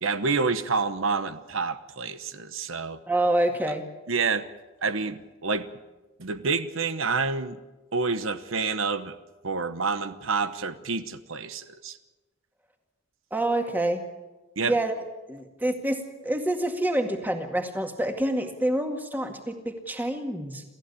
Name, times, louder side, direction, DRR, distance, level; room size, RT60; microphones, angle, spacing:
voice 1, 0.0-3.0 4.1-4.5 4.8-5.7 6.2-7.6 7.9-9.2 9.4-12.0 14.6-14.7, right 4 dB, 80° right, 11 dB, 1.0 m, -28 dB
voice 2, 3.1-3.9 13.3-14.1 14.6-14.9 15.3-20.6, right 1 dB, 10° right, 4 dB, 2.1 m, -27 dB
28.0 x 14.5 x 8.5 m, 1.2 s
head